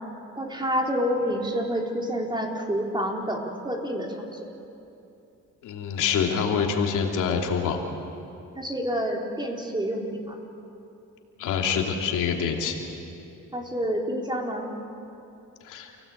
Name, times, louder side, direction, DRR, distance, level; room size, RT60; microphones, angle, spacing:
voice 1, 0.4-4.5 8.6-10.4 13.5-14.7, equal, 15° right, 0 dB, 3.8 m, -28 dB
voice 2, 5.6-7.8 11.4-12.8 15.6-15.9, left 6 dB, 85° left, 1 dB, 2.9 m, -26 dB
29.5 x 17.5 x 8.5 m, 2.8 s
cardioid pair, 90°, 30 cm